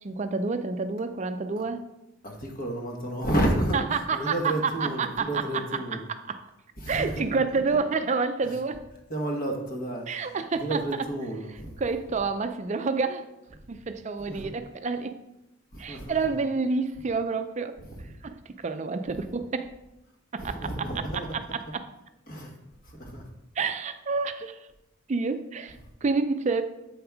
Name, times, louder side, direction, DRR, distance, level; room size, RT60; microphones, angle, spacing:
voice 1, 0.0-1.8 3.7-6.4 6.9-8.8 10.1-10.8 11.8-13.3 13.7-15.2 15.8-17.8 18.2-19.7 20.3-20.9 21.5-21.8 23.6-24.7 25.1-26.6, right 4 dB, 35° right, 9 dB, 0.4 m, -29 dB
voice 2, 2.2-6.0 6.8-7.4 8.4-8.5 9.1-11.8 14.2-14.5 15.7-16.2 17.9-18.0 20.4-21.4 22.3-22.6 22.8-23.3, right 1 dB, 40° left, 1 dB, 1.2 m, -31 dB
7.8 x 5.2 x 3.5 m, 0.92 s
head